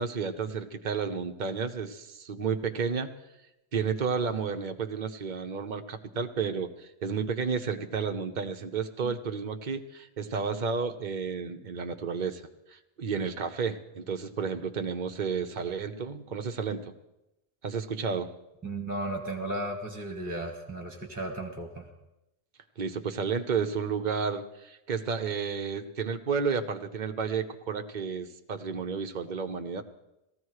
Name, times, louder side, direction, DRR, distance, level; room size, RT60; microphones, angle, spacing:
voice 1, 0.0-3.1 3.7-12.4 12.7-16.9 17.6-18.3 22.8-29.8, right 5 dB, 45° right, 6 dB, 0.9 m, -32 dB
voice 2, 18.6-21.9, right 1 dB, 10° right, 2 dB, 1.7 m, -35 dB
17.5 x 14.5 x 4.8 m, 0.92 s
omnidirectional pair, 1.2 m